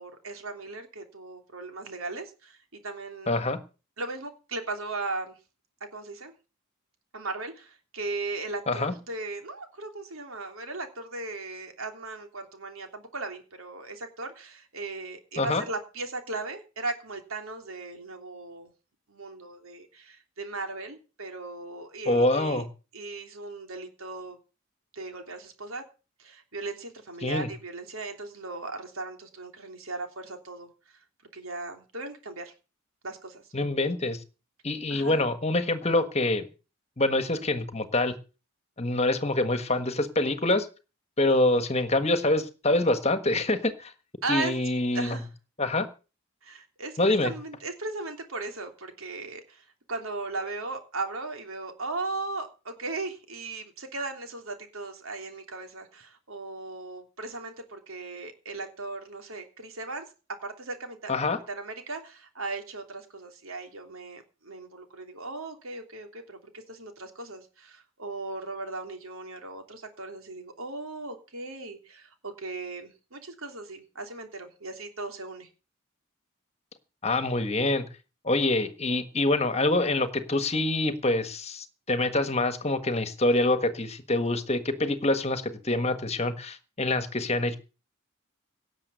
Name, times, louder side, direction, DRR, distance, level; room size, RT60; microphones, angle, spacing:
voice 1, 0.0-2.6 2.8-3.4 4.0-5.4 5.9-6.3 7.1-18.7 19.1-22.6 22.9-24.4 24.9-25.8 26.2-30.7 31.3-32.5 33.0-33.4 34.9-35.2 41.2-41.3 44.2-44.5 44.9-45.3 46.4-60.0 60.4-61.1 61.5-75.5, right 3 dB, 75° right, 5 dB, 3.2 m, -37 dB
voice 2, 3.3-3.6 8.7-8.9 15.4-15.6 22.0-22.7 27.2-27.5 33.5-34.2 34.6-36.5 37.0-38.1 38.8-40.7 41.2-43.9 44.3-45.2 45.6-45.9 47.0-47.3 61.1-61.4 77.0-77.9 78.2-87.5, left 2 dB, 30° left, 9 dB, 1.5 m, -25 dB
18.0 x 7.3 x 6.9 m, 0.34 s
head